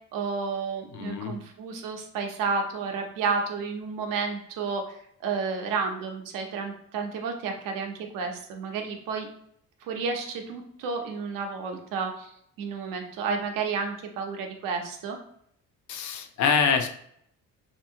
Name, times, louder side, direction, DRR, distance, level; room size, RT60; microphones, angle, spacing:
voice 1, 0.1-9.3 9.8-12.3 12.6-15.2, right 5 dB, 85° right, 3 dB, 0.7 m, -31 dB
voice 2, 0.9-1.4 15.9-16.9, left 6 dB, 60° left, 7 dB, 0.5 m, -25 dB
2.8 x 2.7 x 2.7 m, 0.70 s
cardioid pair, 130°, 32 cm